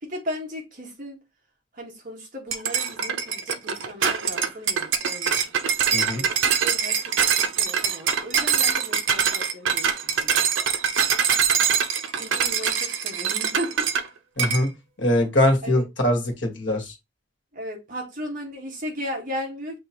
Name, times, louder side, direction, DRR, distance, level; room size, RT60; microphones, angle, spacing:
voice 1, 0.0-1.2 1.7-5.5 6.1-10.4 12.1-13.9 15.6-15.9 17.5-19.8, equal, 45° right, 1.6 m, -36 dB
sound 1, 2.5-14.1 14.4-14.7, right 7 dB, 85° right, 0.7 m, -23 dB
voice 2, 5.9-6.2 14.4-14.7 15.0-16.9, left 1 dB, 65° left, 1.6 m, -22 dB
6.3 x 2.8 x 2.9 m
head